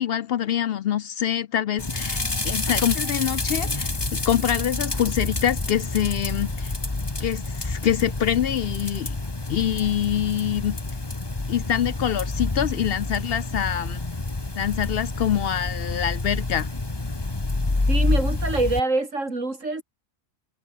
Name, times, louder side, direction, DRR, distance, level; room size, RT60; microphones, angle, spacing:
voice 1, 0.0-6.7 7.2-9.2 9.5-10.8 11.5-14.0 14.5-16.7, left 10 dB, 60° left, 0.7 m, -25 dB
sound 1, 1.8-18.8, left 2 dB, 20° left, 1.4 m, -28 dB
voice 2, 17.9-19.8, right 2 dB, 85° right, 4.7 m, -25 dB
omnidirectional pair, 1.3 m